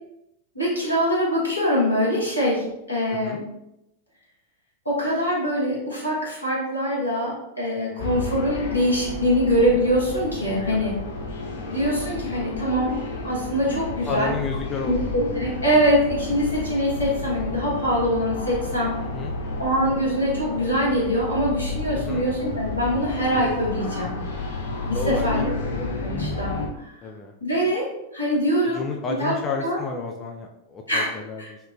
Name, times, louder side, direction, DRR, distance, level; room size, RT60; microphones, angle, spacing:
voice 1, 0.5-3.4 4.8-10.9 11.7-13.0 13.2-14.3 14.9-19.0 19.6-24.1 24.8-26.9 27.4-28.8 29.2-29.3 29.6-29.8 30.9-31.1 31.4-31.5, equal, 85° left, -6 dB, 1.1 m, -23 dB
voice 2, 3.1-3.4 7.9-8.1 10.7-10.9 14.0-15.0 19.1-19.4 21.9-22.3 24.8-25.6 27.0-27.3 28.6-31.6, left 4 dB, 25° left, 2 dB, 0.3 m, -32 dB
sound 1, 8.0-26.7, left 3 dB, 55° left, 0.6 m, -31 dB
3.6 x 2.1 x 2.4 m, 0.85 s
figure-of-eight pair, 90°, 0 cm